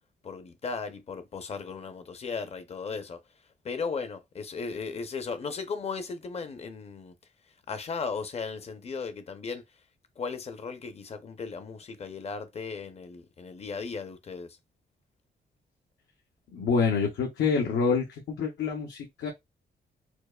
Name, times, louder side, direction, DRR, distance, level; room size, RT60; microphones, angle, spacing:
voice 1, 0.2-3.2 3.6-7.1 7.7-9.6 10.2-14.6, left 5 dB, 35° left, 0.5 m, -36 dB
voice 2, 16.5-19.3, left 5 dB, 85° left, 0.8 m, -27 dB
4.5 x 2.4 x 2.3 m
wide cardioid pair, 150°, 18 cm